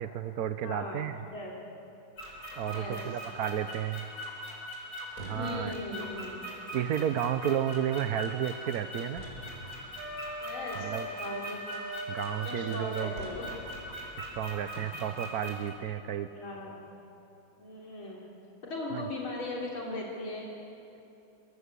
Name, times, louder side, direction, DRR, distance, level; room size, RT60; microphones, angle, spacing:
voice 1, 0.0-1.2 2.6-4.1 5.2-5.7 6.7-9.2 10.7-11.1 12.1-13.1 14.2-16.3 18.9-19.0, right 9 dB, 60° right, 9 dB, 1.1 m, -32 dB
voice 2, 0.6-1.0 1.3-1.6 2.7-3.0 5.3-6.4 10.4-11.6 12.4-13.5 14.7-14.8 16.3-16.8 17.6-18.3 18.6-20.5, left 2 dB, 80° left, -3 dB, 4.4 m, -38 dB
sound 1, 2.2-15.7, equal, 45° left, 6.2 m, -42 dB
Wind instrument woodwind instrument, 10.0-13.1, right 1 dB, 80° right, 5.4 m, -40 dB
27.0 x 24.0 x 8.3 m, 2.8 s
omnidirectional pair, 2.2 m